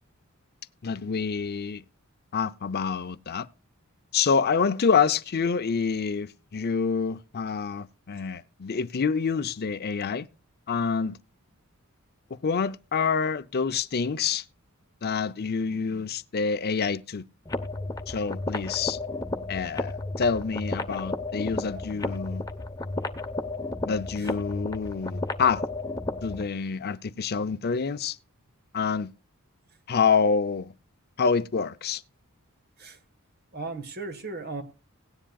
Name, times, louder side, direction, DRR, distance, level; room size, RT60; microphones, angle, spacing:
voice 1, 0.8-1.8 2.3-3.5 4.1-10.3 10.7-11.2 12.3-14.4 15.0-17.2 18.1-19.0 19.5-22.4 23.8-25.6 26.2-28.2 28.7-29.1 29.9-30.7 31.2-32.0, left 5 dB, 45° left, 0.6 m, -27 dB
sound 1, 17.5-26.5, left 2 dB, 15° left, 0.9 m, -33 dB
voice 2, 33.5-34.6, right 3 dB, 50° right, 1.5 m, -36 dB
17.5 x 10.0 x 2.3 m
head